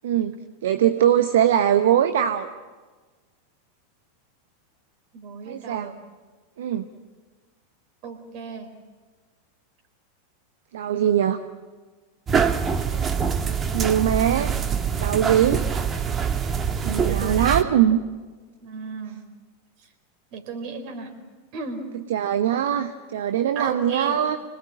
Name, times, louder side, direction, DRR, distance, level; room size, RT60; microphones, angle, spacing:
voice 1, 0.0-2.5 5.5-5.9 6.6-6.9 10.7-11.4 13.7-14.5 15.0-15.6 16.8-18.0 22.1-24.4, right 10 dB, 65° right, 9 dB, 1.0 m, -21 dB
voice 2, 5.1-6.0 8.0-8.7 14.3-14.9 17.1-17.6 18.6-19.2 19.8-19.9 20.3-21.1 21.5-21.8 23.5-24.2, right 5 dB, 45° right, 5 dB, 4.4 m, -35 dB
sound 1, 12.3-17.6, right 6 dB, 25° right, 1.4 m, -24 dB
26.0 x 20.0 x 8.7 m, 1.4 s
figure-of-eight pair, 90°, 0 cm